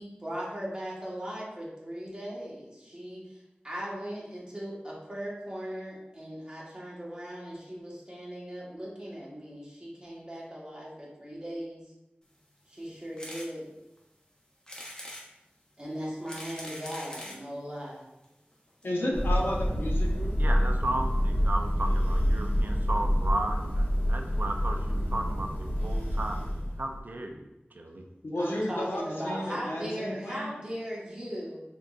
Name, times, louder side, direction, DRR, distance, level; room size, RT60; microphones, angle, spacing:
voice 1, 0.0-3.4 3.6-11.8 12.7-13.7 15.8-18.0 28.4-31.6, equal, 25° right, -5 dB, 1.2 m, -38 dB
sound 1, 13.2-13.5 14.0-14.1 14.7-15.3 16.0-17.4 18.2-18.3 18.5-18.6 18.8-18.9, left 1 dB, 20° left, 0.8 m, -42 dB
voice 2, 18.8-20.3 28.2-30.5, left 1 dB, 85° left, -3 dB, 0.8 m, -32 dB
Thunder, 19.1-27.0, equal, 65° left, 1.4 m, -27 dB
voice 3, 20.4-26.5 26.8-28.0, right 1 dB, 55° right, 3 dB, 0.4 m, -35 dB
3.6 x 3.6 x 2.4 m, 0.94 s
wide cardioid pair, 55°, 4 cm